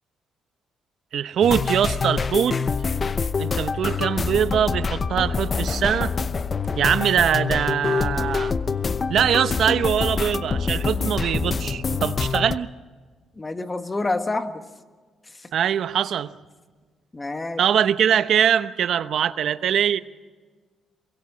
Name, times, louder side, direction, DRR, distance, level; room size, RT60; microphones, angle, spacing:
voice 1, 1.1-2.6 3.4-6.1 6.8-8.5 9.1-12.7 15.5-16.3 17.6-20.0, right 9 dB, 65° right, 13 dB, 0.8 m, -22 dB
sound 1, 1.4-12.6, left 5 dB, 35° left, 0.8 m, -25 dB
voice 2, 13.4-14.6 15.4-15.5 17.1-17.6, left 2 dB, 20° left, 8 dB, 1.6 m, -27 dB
23.0 x 23.0 x 6.2 m, 1.4 s
cardioid pair, 90°, 0 cm